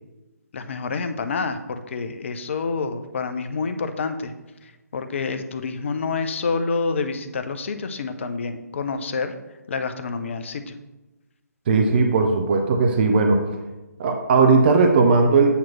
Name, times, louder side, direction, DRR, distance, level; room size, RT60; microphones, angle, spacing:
voice 1, 0.5-4.3 4.6-9.3 9.7-10.8, left 4 dB, 45° left, 9 dB, 0.6 m, -28 dB
voice 2, 11.7-13.4 14.0-15.5, right 4 dB, 35° right, 4 dB, 0.7 m, -17 dB
8.3 x 3.1 x 5.8 m, 1.1 s
figure-of-eight pair, 140°, 9 cm